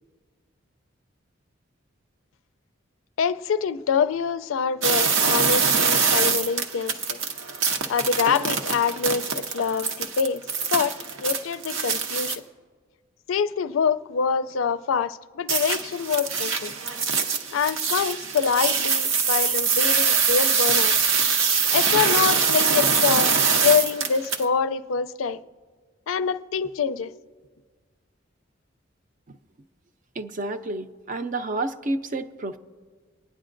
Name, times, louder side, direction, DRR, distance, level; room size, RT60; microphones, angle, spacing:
voice 1, 3.2-7.2 7.9-10.4 10.7-10.9 11.2-12.4 13.3-16.7 17.5-21.0 21.7-25.4 26.1-27.1, left 6 dB, 90° left, 0.4 m, -25 dB
sound 1, 4.8-12.4 15.5-24.4, right 5 dB, 90° right, 0.8 m, -23 dB
voice 2, 30.2-32.6, right 2 dB, 40° right, 0.5 m, -30 dB
26.5 x 9.7 x 2.5 m
head